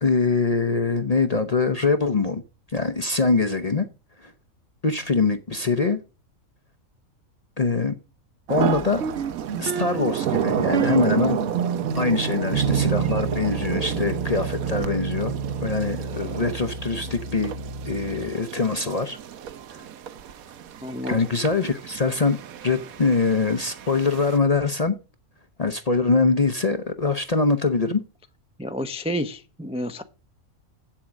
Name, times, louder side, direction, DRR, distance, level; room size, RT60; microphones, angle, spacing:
voice 1, 0.0-2.4 2.7-3.9 4.2-4.3 4.8-6.0 7.6-8.0 8.5-9.0 9.6-11.4 12.0-15.3 15.6-17.5 17.9-19.2 19.7-19.8 21.1-22.4 22.6-24.9 25.6-28.0, left 4 dB, 35° left, 0.7 m, -23 dB
sound 1, 8.5-24.4, right 9 dB, 80° right, 1.2 m, -32 dB
sound 2, 8.6-18.3, right 6 dB, 60° right, 1.1 m, -29 dB
voice 2, 20.8-21.2 28.6-30.0, equal, 5° right, 0.4 m, -29 dB
8.5 x 7.3 x 6.2 m
omnidirectional pair, 1.5 m